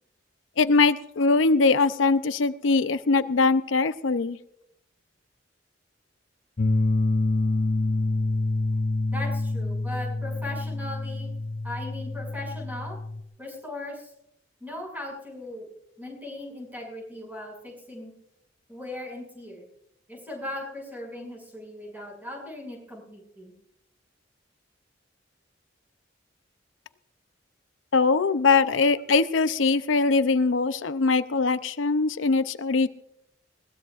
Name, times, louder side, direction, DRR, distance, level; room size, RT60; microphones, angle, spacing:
voice 1, 0.6-4.4 27.9-32.9, left 4 dB, 90° left, 12 dB, 0.6 m, -22 dB
sound 1, 6.6-13.2, left 2 dB, 40° left, 0.7 m, -27 dB
voice 2, 9.1-11.3 11.6-13.0 13.4-14.1 14.6-15.7 16.0-18.1 18.7-19.6 20.1-23.5 28.5-28.8, left 1 dB, 10° right, -1 dB, 6.3 m, -38 dB
20.5 x 18.5 x 2.5 m, 0.78 s
head